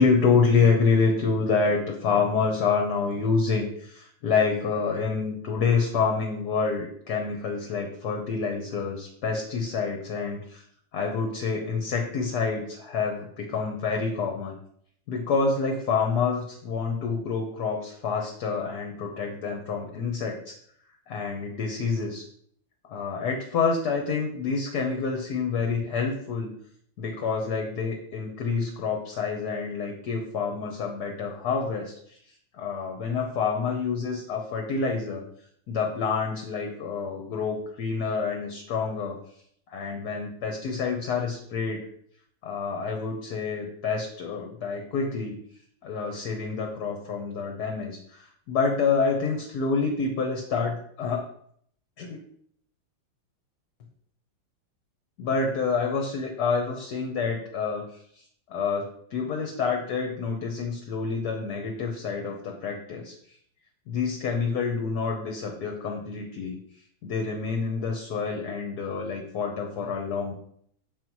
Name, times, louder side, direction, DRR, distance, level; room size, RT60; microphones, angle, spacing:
voice 1, 0.0-10.6 10.9-14.6 15.1-20.5 21.1-22.3 22.8-26.5 27.0-32.2 32.5-35.2 35.7-39.2 39.7-41.8 42.4-45.4 45.8-51.3 52.0-52.2 55.2-57.9 58.1-58.2 58.5-63.2 63.9-66.6 67.0-70.3, left 5 dB, 60° left, 1 dB, 1.4 m, -27 dB
7.3 x 4.0 x 4.6 m, 0.65 s
omnidirectional pair, 2.1 m